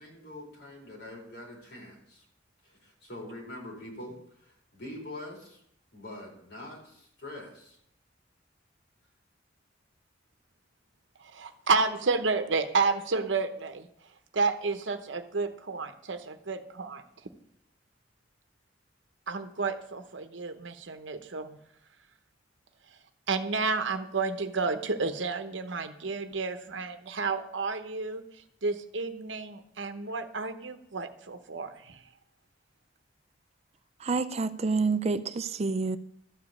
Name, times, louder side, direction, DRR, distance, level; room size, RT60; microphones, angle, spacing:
voice 1, 0.0-2.2 2.6-5.6 5.9-7.8, left 1 dB, 60° left, 4.7 m, -44 dB
voice 2, 11.2-13.9 14.3-17.0 19.3-21.6 23.3-32.0, right 4 dB, 70° right, 0.9 m, -31 dB
voice 3, 34.0-36.0, right 4 dB, 35° right, 0.5 m, -28 dB
13.0 x 5.1 x 8.4 m
head